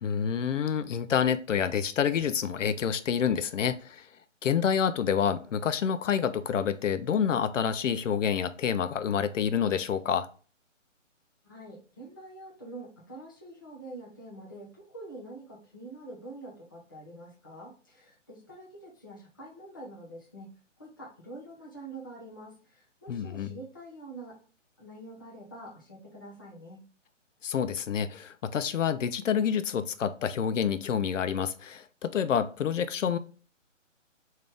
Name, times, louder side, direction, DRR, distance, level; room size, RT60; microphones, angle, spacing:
voice 1, 0.0-4.1 4.4-10.3 23.1-23.6 27.4-33.2, left 8 dB, 70° left, 0.5 m, -28 dB
voice 2, 11.4-20.5 20.8-24.3 24.8-26.8, right 2 dB, 15° left, 0.5 m, -46 dB
3.3 x 2.7 x 3.5 m
figure-of-eight pair, 150°, 38 cm